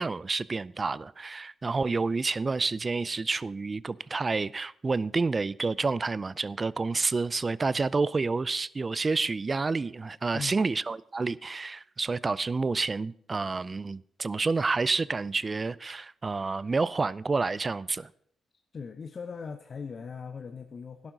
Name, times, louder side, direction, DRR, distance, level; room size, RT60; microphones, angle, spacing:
voice 1, 0.0-18.1, right 4 dB, 40° right, 0.4 m, -29 dB
voice 2, 10.3-10.6 18.7-21.1, left 5 dB, 50° left, 0.8 m, -39 dB
13.0 x 11.5 x 3.9 m
supercardioid pair, 50°, 0 cm